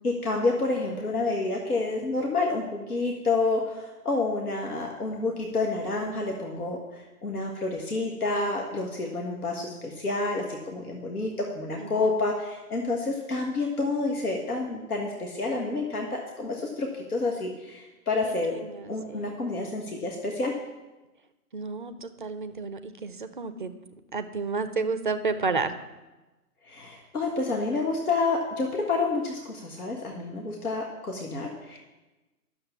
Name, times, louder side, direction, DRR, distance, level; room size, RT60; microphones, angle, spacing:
voice 1, 0.0-18.5 18.9-20.5 26.7-31.8, left 3 dB, 70° left, 0 dB, 1.7 m, -29 dB
voice 2, 11.8-12.1 18.2-19.4 21.5-23.7 24.1-25.7, right 4 dB, 35° right, 11 dB, 0.5 m, -31 dB
10.5 x 6.8 x 6.9 m, 1.1 s
figure-of-eight pair, 130°, 47 cm